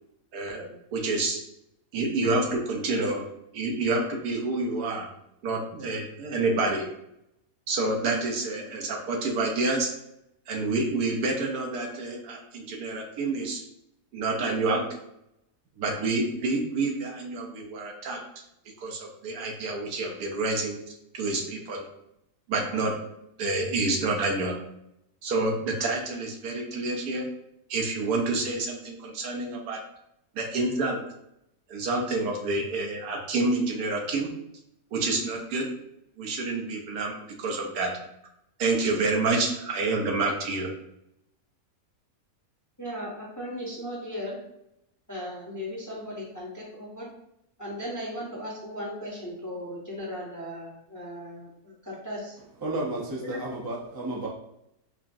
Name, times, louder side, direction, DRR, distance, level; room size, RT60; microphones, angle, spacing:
voice 1, 0.3-1.4 1.9-3.2 3.5-5.1 5.4-6.8 7.7-9.9 10.5-13.6 14.1-14.8 15.8-18.2 18.8-20.8 21.1-21.8 22.5-22.9 23.4-24.5 25.2-27.3 27.7-29.8 30.3-31.0 31.7-34.3 34.9-35.7 36.2-37.9 38.6-40.7, right 3 dB, 80° right, 1 dB, 1.3 m, -28 dB
voice 2, 42.8-44.4 45.1-47.1 47.6-52.3 53.2-53.4, equal, 20° left, -4 dB, 0.5 m, -37 dB
voice 3, 52.6-54.3, right 2 dB, 35° right, -3 dB, 0.3 m, -32 dB
4.9 x 2.4 x 2.6 m, 0.80 s
omnidirectional pair, 1.6 m